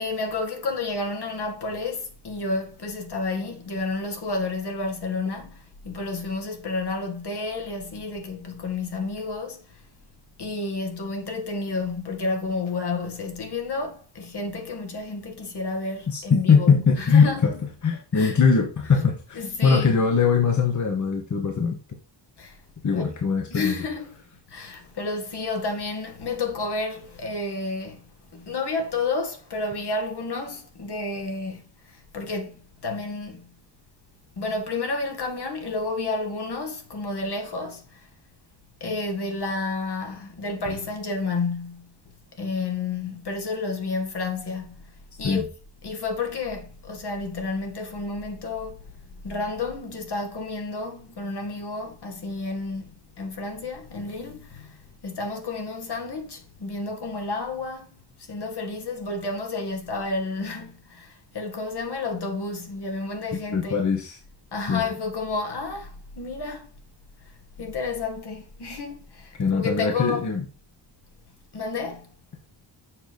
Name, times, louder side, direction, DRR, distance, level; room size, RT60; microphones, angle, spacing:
voice 1, 0.0-9.8 10.4-17.4 18.1-18.4 19.4-20.0 22.4-22.6 22.9-23.1 23.5-24.2 24.5-33.5 34.4-38.0 38.8-41.9 42.4-44.8 45.2-45.5 45.8-48.8 49.2-52.9 53.2-57.9 58.3-63.8 64.5-66.7 67.6-70.3 71.5-72.1, left 3 dB, 65° left, 2.0 m, -31 dB
voice 2, 16.1-21.8 22.8-23.8 45.2-45.4 63.3-64.2 64.7-64.8 69.4-70.4, left 5 dB, 40° left, 1.2 m, -21 dB
7.2 x 5.3 x 5.2 m
wide cardioid pair, 160°, 43 cm